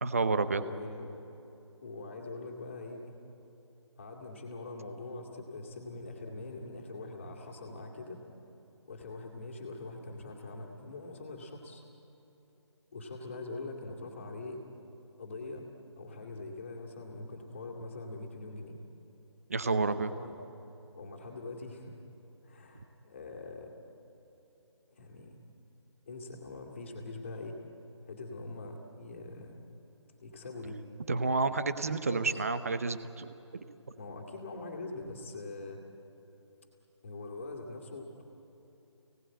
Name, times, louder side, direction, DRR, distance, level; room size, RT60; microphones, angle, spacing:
voice 1, 0.0-0.6 19.5-20.1 31.1-33.6, right 4 dB, 30° right, 12 dB, 0.7 m, -30 dB
voice 2, 0.6-1.1 1.8-3.2 4.0-8.2 8.9-11.8 12.9-14.6 15.2-15.7 16.0-18.8 20.1-20.3 20.9-22.0 22.4-23.7 24.9-25.4 26.1-27.6 28.1-29.6 30.2-30.8 32.1-32.4 34.0-35.8 37.0-38.2, left 2 dB, 25° left, 0 dB, 2.4 m, -43 dB
28.5 x 18.0 x 9.0 m, 3.0 s
figure-of-eight pair, 175°, 16 cm